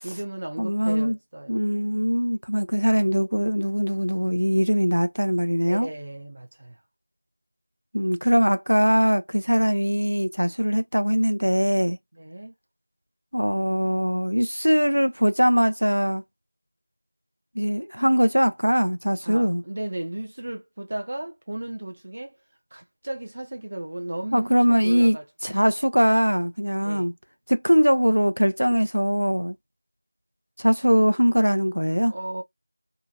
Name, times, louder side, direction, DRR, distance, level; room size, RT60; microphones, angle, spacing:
voice 1, 0.0-1.6 5.7-6.8 9.5-9.7 12.2-12.5 19.2-22.3 22.7-25.3 26.8-27.1 32.1-32.4, right 1 dB, 35° right, 0.5 m, -35 dB
voice 2, 0.6-1.2 1.5-5.9 7.9-12.0 13.3-16.2 17.5-19.6 24.3-25.2 25.4-27.1 27.5-29.6 30.6-32.1, equal, 90° right, 0.6 m, -21 dB
2.7 x 2.2 x 2.8 m
figure-of-eight pair, 175°, 0 cm